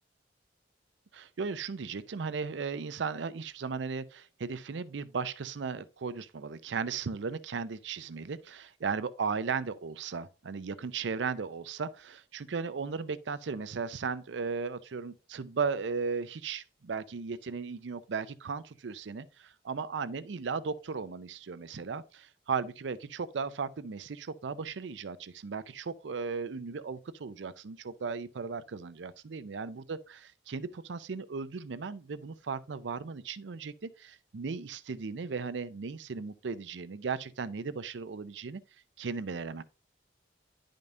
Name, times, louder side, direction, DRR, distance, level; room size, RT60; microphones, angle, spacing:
voice 1, 1.1-30.0 30.5-38.6 39.0-39.6, right 5 dB, 80° right, 0.5 m, -36 dB
10.5 x 5.1 x 2.6 m
head